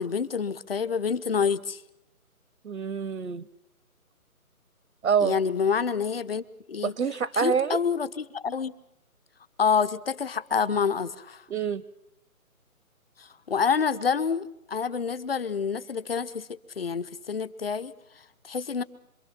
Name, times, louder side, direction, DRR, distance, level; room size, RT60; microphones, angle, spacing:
voice 1, 0.0-1.8 5.2-6.9 7.4-8.7 9.6-11.4 13.2-16.5 16.8-17.9 18.4-18.8, left 6 dB, 40° left, 15 dB, 0.9 m, -27 dB
voice 2, 2.6-3.4 5.0-5.3 6.8-7.8 11.5-11.8, right 7 dB, 65° right, 18 dB, 0.9 m, -26 dB
26.5 x 23.0 x 5.8 m, 0.83 s
figure-of-eight pair, 160°, 44 cm